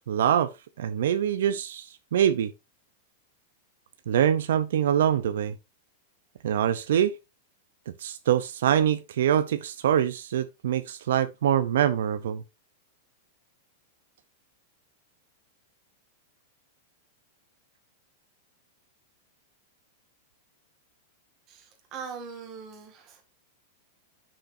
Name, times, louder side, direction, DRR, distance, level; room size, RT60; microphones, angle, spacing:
voice 1, 0.1-0.5 0.8-2.5 4.1-5.6 6.4-7.1 8.0-12.4, right 10 dB, 70° right, 0.6 m, -24 dB
voice 2, 21.5-23.2, right 6 dB, 25° right, 1.9 m, -41 dB
10.0 x 6.4 x 2.7 m
supercardioid pair, 180°, 0 cm